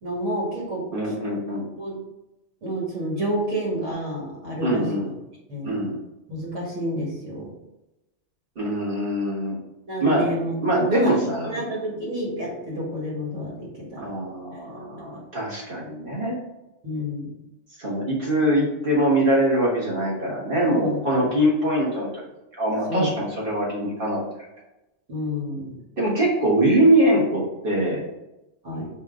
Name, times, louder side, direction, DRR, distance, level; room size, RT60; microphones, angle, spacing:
voice 1, 0.0-0.8 1.8-2.0 2.6-4.9 5.5-5.7 6.3-7.5 9.9-14.1 14.5-14.6 15.0-15.1 16.8-17.3 20.6-21.0 22.9-23.2 25.1-25.7 28.6-28.9, equal, 80° right, -3 dB, 1.8 m, -29 dB
voice 2, 0.9-1.6 4.6-5.1 5.7-6.0 8.5-9.6 10.0-10.3 10.5-11.6 13.9-16.4 17.8-22.1 22.5-24.2 26.0-28.1, right 1 dB, 45° right, -5 dB, 1.5 m, -23 dB
5.2 x 2.5 x 3.7 m, 0.96 s
omnidirectional pair, 1.2 m